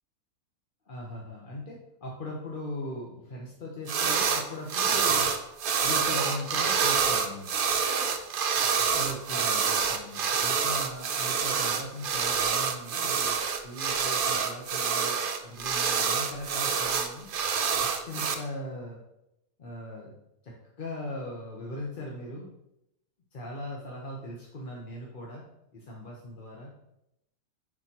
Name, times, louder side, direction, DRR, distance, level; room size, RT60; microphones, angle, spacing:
voice 1, 0.8-5.3 5.8-7.5 8.5-17.3 17.8-19.0 19.6-20.1 20.4-22.5 23.3-25.4 25.7-26.7, left 1 dB, 40° left, -3 dB, 0.9 m, -39 dB
sound 1, 3.9-4.4 4.7-18.3, right 6 dB, 70° right, 0.5 m, -27 dB
10.0 x 4.5 x 2.9 m, 0.85 s
omnidirectional pair, 1.6 m